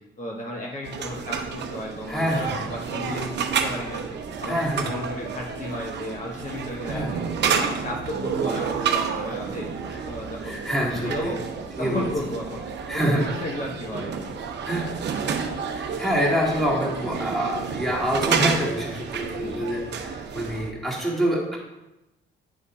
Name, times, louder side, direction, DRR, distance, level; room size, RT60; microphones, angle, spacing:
voice 1, 0.2-10.6 11.0-11.4 11.8-12.6 12.9-14.3 19.3-19.7, left 1 dB, 40° left, -3 dB, 1.3 m, -34 dB
sound 1, 0.8-20.7, right 6 dB, 60° right, 0.8 m, -30 dB
voice 2, 2.1-2.7 4.5-4.9 6.9-7.1 9.9-10.0 10.4-11.4 11.8-12.1 12.9-13.3 14.6-15.0 15.7-21.6, equal, ahead, -4 dB, 2.2 m, -26 dB
9.5 x 3.4 x 4.2 m, 0.96 s
cardioid pair, 90°, 20 cm